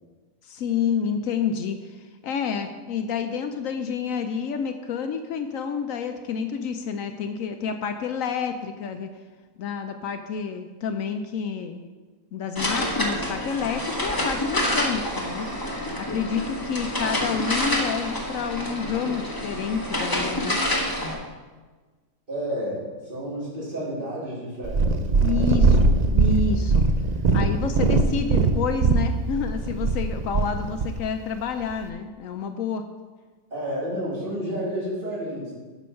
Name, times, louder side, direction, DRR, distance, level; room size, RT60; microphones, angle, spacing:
voice 1, 0.4-9.1 9.6-11.9 12.3-15.5 16.0-20.6 25.2-26.9 27.3-32.9, left 6 dB, 75° left, 7 dB, 0.9 m, -29 dB
sound 1, 12.5-21.1, left 1 dB, 15° left, 1.1 m, -28 dB
voice 2, 22.3-25.5 33.5-35.5, equal, 35° right, -8 dB, 3.3 m, -31 dB
Purr, 24.6-31.0 31.7-31.8, right 4 dB, 65° right, 0.4 m, -21 dB
8.4 x 6.2 x 5.7 m, 1.4 s
omnidirectional pair, 1.5 m